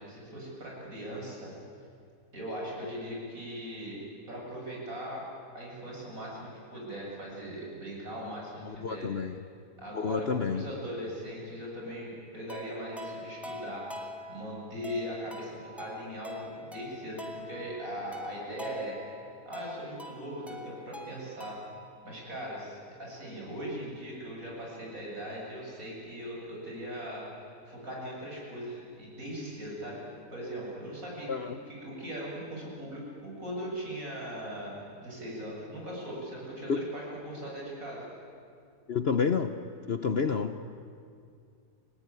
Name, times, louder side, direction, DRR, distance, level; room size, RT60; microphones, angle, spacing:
voice 1, 0.0-1.5 2.3-4.0 4.3-5.2 5.5-9.1 9.8-13.9 14.3-19.0 19.5-21.6 22.0-27.2 27.7-30.0 30.3-31.3 31.6-38.0, equal, 55° right, -3 dB, 8.0 m, -39 dB
voice 2, 8.7-9.3 9.9-10.6 31.3-31.6 36.7-36.8 38.9-39.5 39.9-40.8, left 5 dB, 50° left, 8 dB, 0.9 m, -29 dB
sound 1, 12.5-21.9, left 1 dB, ahead, 1.9 m, -45 dB
29.5 x 18.5 x 9.7 m, 2.3 s
omnidirectional pair, 1.7 m